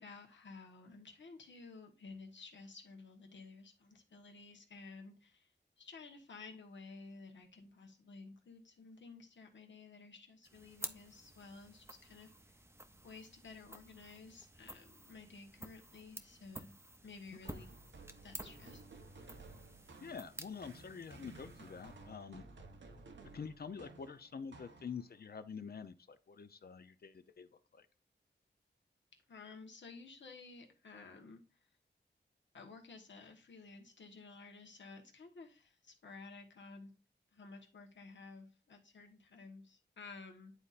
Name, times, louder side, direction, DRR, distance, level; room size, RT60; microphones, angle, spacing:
voice 1, 0.0-5.5 5.8-12.6 13.0-16.7 17.0-17.7 18.2-18.8 29.3-31.6 32.5-36.9 37.3-40.5, left 4 dB, 80° left, 1.2 m, -54 dB
sound 1, 10.4-22.1, right 1 dB, 15° right, 0.6 m, -52 dB
sound 2, 17.4-25.3, right 3 dB, 85° right, 0.9 m, -56 dB
voice 2, 20.0-22.5 23.3-27.5 27.7-27.9, left 6 dB, 55° left, 0.6 m, -47 dB
10.5 x 4.1 x 2.5 m
wide cardioid pair, 105°, 19 cm